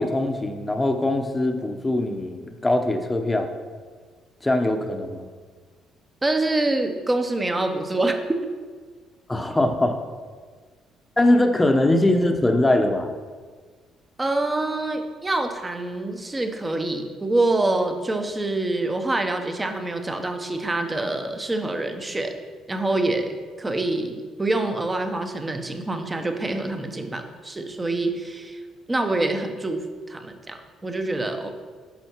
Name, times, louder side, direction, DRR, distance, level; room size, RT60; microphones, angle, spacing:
voice 1, 0.0-3.5 4.4-5.3 9.3-9.9 11.2-13.1, left 1 dB, 10° left, 5 dB, 0.9 m, -21 dB
voice 2, 6.2-8.2 14.2-22.3 22.7-28.6 28.9-31.5, right 2 dB, 15° right, 6 dB, 0.9 m, -26 dB
10.5 x 5.6 x 4.6 m, 1.5 s
cardioid pair, 110°, 0 cm